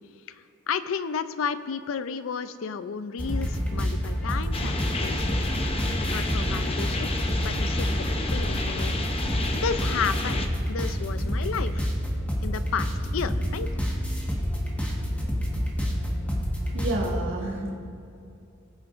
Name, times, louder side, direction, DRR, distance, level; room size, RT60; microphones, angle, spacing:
voice 1, 0.7-5.4 6.1-7.1 7.4-11.9 12.4-13.7, left 6 dB, 85° left, 13 dB, 0.5 m, -32 dB
sound 1, 3.2-17.1, equal, 5° left, 1.4 m, -28 dB
sound 2, 4.5-10.5, left 2 dB, 30° left, 0.7 m, -31 dB
voice 2, 16.6-17.8, right 2 dB, 65° right, -2 dB, 1.8 m, -30 dB
21.0 x 7.1 x 2.5 m, 2.6 s
head